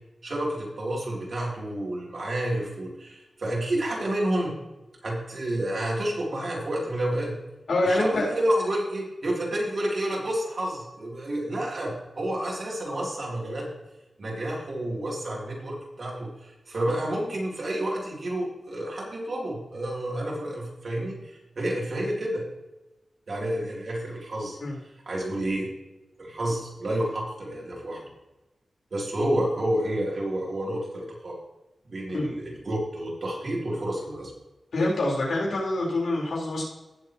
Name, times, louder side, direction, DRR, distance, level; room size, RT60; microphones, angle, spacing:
voice 1, 0.2-4.5 5.0-7.4 7.8-13.7 14.2-22.4 23.3-24.6 25.1-25.7 26.2-28.1 28.9-31.4 31.8-34.3, right 1 dB, 50° right, -3 dB, 3.5 m, -29 dB
voice 2, 7.7-8.3 24.6-24.8 32.1-32.3 34.7-36.6, left 2 dB, 80° left, -4 dB, 4.6 m, -25 dB
17.5 x 7.5 x 3.2 m, 1.0 s
wide cardioid pair, 155°, 0 cm